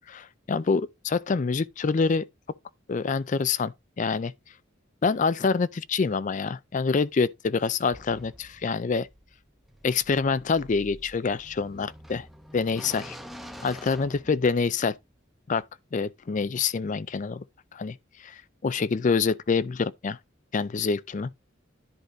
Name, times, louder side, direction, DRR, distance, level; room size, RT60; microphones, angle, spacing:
voice 1, 0.1-2.2 2.9-4.3 5.0-9.1 9.8-12.3 12.5-13.2 13.6-14.9 15.5-15.6 15.9-17.4 17.7-18.0 18.2-20.2 20.5-21.3, left 5 dB, 40° left, 0.4 m, -26 dB
sound 1, 7.9-14.9, equal, ahead, 0.8 m, -47 dB
10.5 x 4.8 x 3.8 m
head